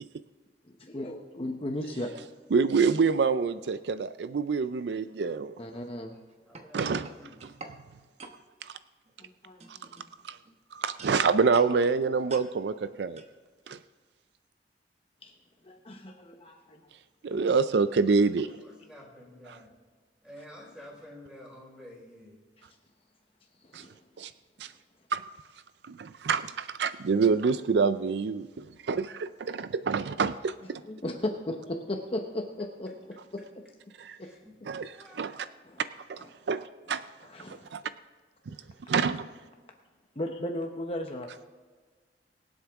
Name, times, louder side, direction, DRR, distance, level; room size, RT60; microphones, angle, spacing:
voice 1, 0.6-2.1 5.6-6.1 9.2-10.0 15.2-15.3 15.6-16.8 22.6-22.7 23.6-24.3 30.8-32.9 33.3-33.4 34.2-34.3 35.6-35.8 36.2-36.3 37.2-37.7 40.2-41.3, left 1 dB, 35° left, 3 dB, 0.9 m, -36 dB
voice 2, 2.5-5.5 6.7-7.1 8.6-8.7 9.7-9.8 10.2-10.4 10.7-13.2 13.7-13.8 17.2-18.5 19.5-19.6 23.7-23.9 24.2-24.3 24.6-24.7 25.1-25.2 25.8-30.8 34.0-34.2 34.7-35.5 36.1-36.2 36.5-37.0 37.5-37.8 38.5-38.6 38.9-39.3, right 5 dB, 70° right, 13 dB, 0.4 m, -27 dB
sound 1, 6.1-7.8 8.2-8.4 9.1-9.3 9.6-10.6 11.0-11.7 12.3-12.5 13.2-13.3, right 3 dB, 40° right, 1.1 m, -47 dB
voice 3, 6.5-7.4 12.7-12.9 18.6-19.7 20.2-22.4 30.8-30.9 34.2-34.5 34.9-35.3 38.5-38.6, left 1 dB, 5° right, -4 dB, 4.7 m, -50 dB
24.0 x 8.0 x 3.6 m, 1.4 s
head